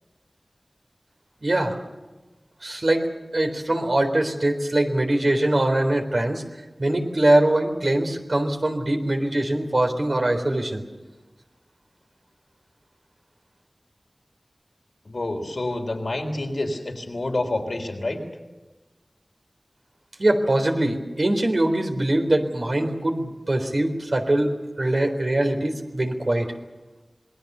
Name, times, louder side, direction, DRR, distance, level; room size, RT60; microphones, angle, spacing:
voice 1, 1.4-1.7 2.6-6.4 6.8-10.8 20.2-26.5, right 1 dB, 70° right, 3 dB, 3.9 m, -22 dB
voice 2, 15.1-18.2, left 2 dB, 85° left, 4 dB, 3.7 m, -28 dB
27.0 x 21.0 x 6.9 m, 1.1 s
wide cardioid pair, 45°, 0 cm